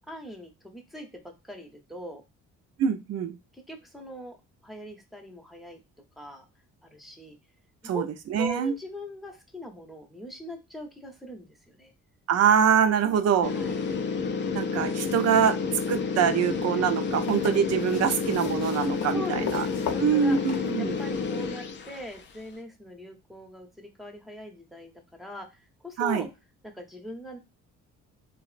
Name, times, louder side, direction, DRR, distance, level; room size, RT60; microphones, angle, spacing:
voice 1, 0.1-2.2 3.5-4.4 4.6-5.8 6.2-6.5 6.8-7.4 7.8-8.1 8.4-11.9 13.5-13.8 18.9-20.4 20.8-26.3 26.7-27.4, equal, ahead, 3 dB, 0.7 m, -41 dB
voice 2, 2.8-3.3 7.8-8.0 8.3-8.7 12.3-13.5 14.5-15.5 15.9-19.7 20.0-20.9 26.0-26.3, right 7 dB, 55° right, 9 dB, 0.5 m, -24 dB
sound 1, 13.4-22.2, left 5 dB, 40° left, 0.4 m, -30 dB
sound 2, 17.2-21.3 22.5-22.6, left 7 dB, 60° left, 0.7 m, -38 dB
2.9 x 2.0 x 2.4 m, 0.25 s
cardioid pair, 90°, 30 cm